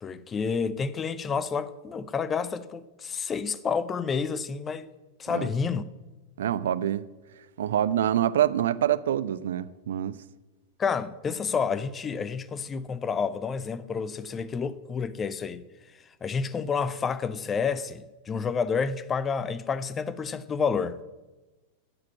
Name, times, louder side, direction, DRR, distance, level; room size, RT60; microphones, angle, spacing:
voice 1, 0.0-4.9 5.2-5.8 10.8-15.6 16.2-21.0, left 5 dB, 20° left, 0.6 m, -29 dB
voice 2, 6.4-7.1 7.6-10.1, right 11 dB, 60° right, 0.5 m, -26 dB
11.5 x 7.4 x 7.3 m
figure-of-eight pair, 90°, 0 cm